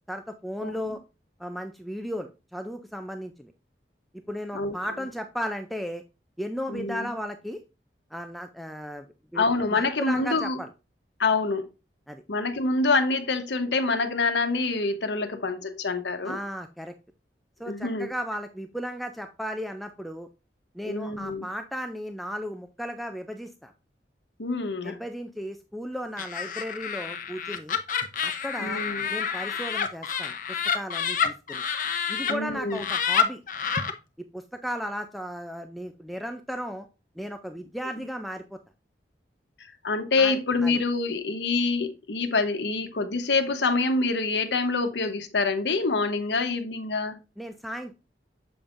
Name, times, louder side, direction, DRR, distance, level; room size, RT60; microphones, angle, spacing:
voice 1, 0.1-1.0 1.4-3.5 4.3-6.0 6.4-7.6 8.1-9.1 9.3-10.7 12.1-12.2 16.3-16.9 17.6-20.3 20.7-23.7 24.8-27.8 28.2-28.8 29.1-31.6 32.1-33.4 34.3-36.9 37.2-38.6 40.2-40.3 40.6-40.8 47.4-47.9, equal, ahead, 0.4 m, -35 dB
voice 2, 0.6-0.9 4.5-4.8 6.7-7.1 9.3-10.6 11.2-11.7 12.3-16.4 17.7-18.1 20.9-21.5 24.4-25.0 28.6-29.1 32.3-32.8 39.8-47.2, left 3 dB, 80° left, 1.0 m, -26 dB
Laughter, 26.2-32.3 32.7-33.9, left 7 dB, 50° left, 0.7 m, -28 dB
7.0 x 5.3 x 2.5 m
head